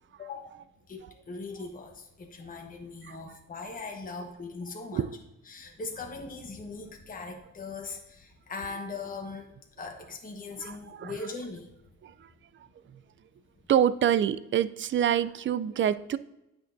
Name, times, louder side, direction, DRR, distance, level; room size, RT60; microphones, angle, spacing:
voice 1, 0.2-0.6 0.9-5.0 5.5-9.5 9.8-11.7, left 3 dB, 30° left, 2 dB, 1.1 m, -40 dB
voice 2, 10.6-11.1 12.0-12.3 12.9-13.0 13.7-16.2, right 10 dB, 40° right, 16 dB, 0.4 m, -26 dB
9.1 x 6.2 x 2.6 m, 0.91 s
cardioid pair, 90°, 30 cm